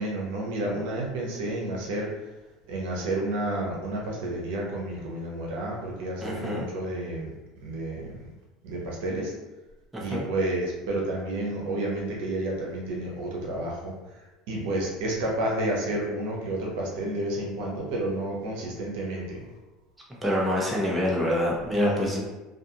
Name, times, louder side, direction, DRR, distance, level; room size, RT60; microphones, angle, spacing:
voice 1, 0.0-2.1 2.7-7.3 7.6-8.1 8.6-9.3 9.9-19.4 21.7-22.2, right 1 dB, 75° right, -2 dB, 0.7 m, -30 dB
voice 2, 6.2-6.7 9.9-10.2 20.2-22.2, left 1 dB, 10° right, -4 dB, 0.7 m, -26 dB
2.4 x 2.4 x 2.8 m, 1.1 s
supercardioid pair, 95°, 0 cm